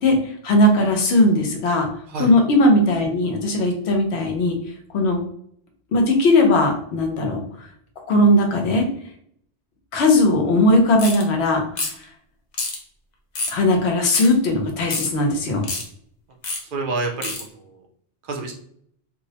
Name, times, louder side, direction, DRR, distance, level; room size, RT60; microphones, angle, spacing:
voice 1, 0.4-1.9 2.2-4.6 4.9-5.2 5.9-7.4 8.1-8.9 9.9-11.6 13.5-15.6, left 1 dB, 85° left, 2 dB, 0.9 m, -18 dB
sound 1, 11.0-11.2 11.8-12.0 12.5-12.8 13.4-13.6 14.1-14.3 14.9-15.1 15.6-15.8 16.4-16.6 17.2-17.4, left 3 dB, 50° left, 0.6 m, -27 dB
voice 2, 16.7-17.8 18.2-18.5, right 3 dB, 60° right, 1 dB, 0.7 m, -28 dB
2.5 x 2.0 x 2.7 m, 0.66 s
omnidirectional pair, 1.1 m